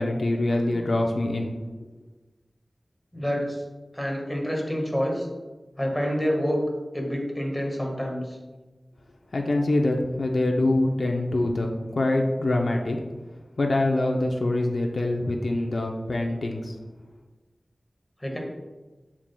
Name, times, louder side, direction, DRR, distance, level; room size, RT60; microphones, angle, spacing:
voice 1, 0.0-1.5 9.3-13.0 13.6-16.7, left 2 dB, 70° left, 1 dB, 0.6 m, -24 dB
voice 2, 3.1-3.6 3.9-5.3 5.8-6.6 6.9-8.4 18.2-18.4, equal, 10° left, -1 dB, 1.5 m, -28 dB
7.2 x 6.3 x 2.2 m, 1.2 s
wide cardioid pair, 80°, 0 cm